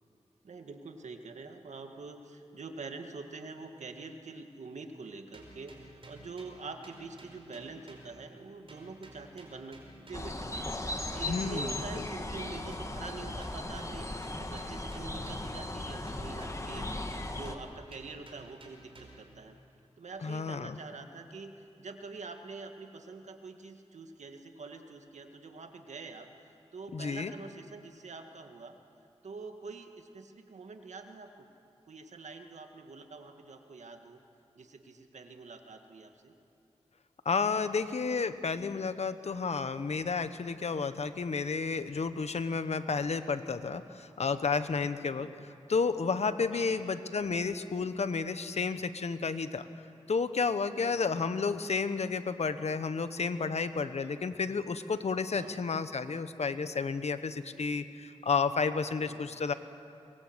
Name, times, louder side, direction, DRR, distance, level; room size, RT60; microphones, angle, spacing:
voice 1, 0.4-9.8 10.1-14.1 14.4-16.9 17.3-19.6 20.0-28.8 29.2-31.5 31.9-34.2 34.6-36.3 45.1-45.5 46.5-47.0 50.8-51.3 54.0-54.2 55.3-55.6 59.0-59.4, right 4 dB, 85° right, 5 dB, 1.9 m, -46 dB
sound 1, 5.3-8.4 8.7-12.0 12.4-15.7 16.1-19.4, right 1 dB, 50° right, 5.0 m, -54 dB
sound 2, 10.1-17.6, left 1 dB, 25° left, 1.8 m, -37 dB
voice 2, 11.3-12.1 20.2-20.8 26.9-27.3 37.2-45.3 45.7-49.6 50.1-59.5, left 5 dB, 70° left, 11 dB, 1.1 m, -31 dB
24.0 x 22.0 x 8.1 m, 2.6 s
wide cardioid pair, 70°, 12 cm